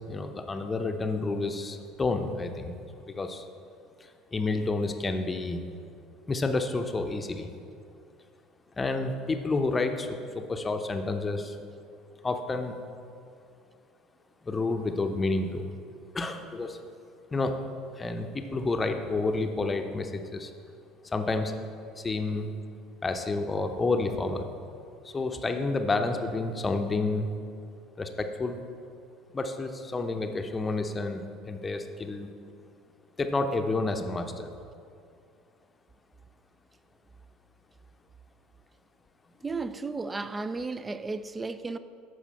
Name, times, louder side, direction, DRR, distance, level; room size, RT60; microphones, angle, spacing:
voice 1, 0.1-2.8 3.1-3.5 4.3-5.6 6.3-7.5 8.8-10.1 10.3-11.6 12.2-12.8 14.4-15.6 16.1-16.8 17.3-17.6 18.0-20.5 21.1-21.6 22.0-22.5 23.0-24.5 25.0-27.3 28.0-28.6 29.3-32.3 33.2-34.5, left 3 dB, 20° left, 0.7 m, -29 dB
voice 2, 39.4-41.8, right 3 dB, 20° right, 0.4 m, -34 dB
13.0 x 4.9 x 4.2 m
figure-of-eight pair, 65°, 0 cm